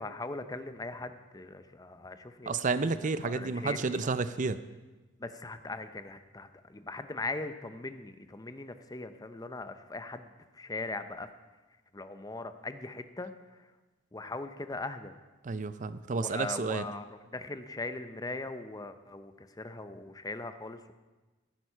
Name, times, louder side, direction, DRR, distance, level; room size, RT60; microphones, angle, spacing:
voice 1, 0.0-2.5 2.8-2.9 3.2-4.0 5.2-10.3 10.5-11.3 11.9-13.3 14.1-15.1 16.1-20.8, left 2 dB, 20° left, 10 dB, 0.7 m, -40 dB
voice 2, 2.5-4.6 15.4-16.9, right 4 dB, 40° right, 13 dB, 0.5 m, -31 dB
14.5 x 11.0 x 5.6 m, 1.2 s
head